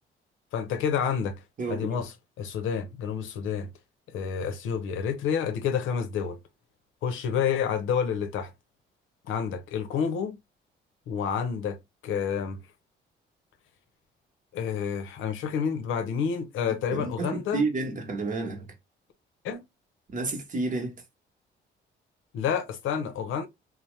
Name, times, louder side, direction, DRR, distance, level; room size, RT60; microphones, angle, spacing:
voice 1, 0.5-1.4 1.7-3.7 4.1-6.4 7.0-8.5 9.3-10.4 11.1-11.8 12.0-12.6 14.5-17.6 19.4-19.6 22.3-23.5, left 7 dB, 85° left, 0.6 m, -29 dB
voice 2, 1.6-2.0 16.9-18.7 20.1-21.0, right 3 dB, 40° right, 0.9 m, -30 dB
2.8 x 2.0 x 3.1 m
cardioid pair, 90°, 20 cm